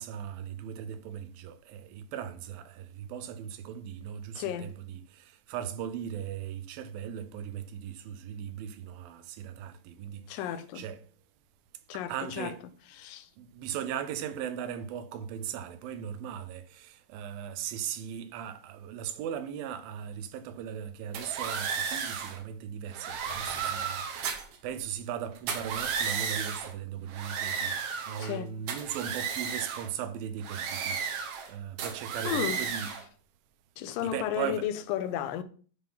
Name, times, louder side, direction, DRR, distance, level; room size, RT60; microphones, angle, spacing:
voice 1, 0.0-10.4 10.8-11.0 11.9-12.6 13.4-32.9 34.0-34.7, right 9 dB, 80° right, 2.5 m, -38 dB
voice 2, 4.4-4.7 10.3-10.8 11.9-12.5 13.0-13.3 27.0-27.4 28.2-28.5 32.2-32.9 33.8-35.4, left 10 dB, 75° left, 2.3 m, -34 dB
sound 1, 21.1-22.4 22.9-24.6 25.4-26.7 27.1-28.4 28.7-29.9 30.4-31.5 31.8-33.0, right 6 dB, 65° right, 1.9 m, -33 dB
9.8 x 3.7 x 5.5 m
omnidirectional pair, 4.2 m